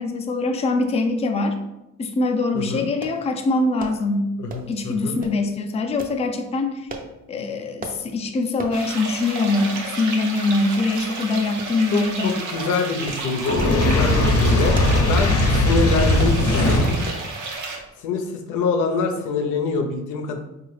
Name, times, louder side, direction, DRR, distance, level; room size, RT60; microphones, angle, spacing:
voice 1, 0.0-1.6 2.0-4.3 4.7-6.9 7.3-12.3 14.5-14.6 17.7-17.8, left 3 dB, 20° left, 4 dB, 0.4 m, -23 dB
voice 2, 2.5-2.8 4.4-5.1 11.9-16.9 18.0-20.4, left 4 dB, 85° left, 4 dB, 0.6 m, -25 dB
sound 1, 3.0-3.2 3.8-4.0 4.5-4.8 5.2-5.4 6.0-6.2 6.9-7.1 7.8-8.0 8.6-8.8 9.2-9.3 9.6-9.8 10.5-10.6 11.6-12.0 12.3-12.5 13.1-13.2 13.7-14.0 14.5-15.1 15.5-15.8 16.2-16.4 17.0-17.3 17.8-18.0 18.2-18.3, right 3 dB, 30° right, 0.5 m, -36 dB
sound 2, 8.7-17.8, right 3 dB, 75° right, 0.7 m, -32 dB
Fire, 13.4-17.1, left 1 dB, 50° left, 0.7 m, -18 dB
3.7 x 2.4 x 3.1 m, 0.93 s
cardioid pair, 90°, 30 cm